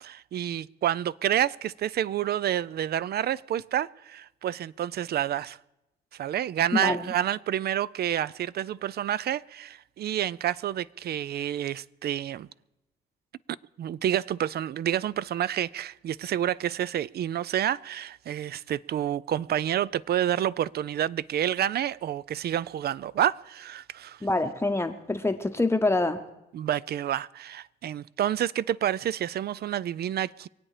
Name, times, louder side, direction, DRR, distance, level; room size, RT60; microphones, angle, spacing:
voice 1, 0.0-5.6 6.2-12.5 13.8-24.2 26.5-30.5, right 11 dB, 55° right, 0.4 m, -29 dB
voice 2, 6.7-7.1 24.2-26.2, left 2 dB, 15° left, 0.8 m, -26 dB
24.0 x 8.7 x 4.9 m
cardioid pair, 90°, 20 cm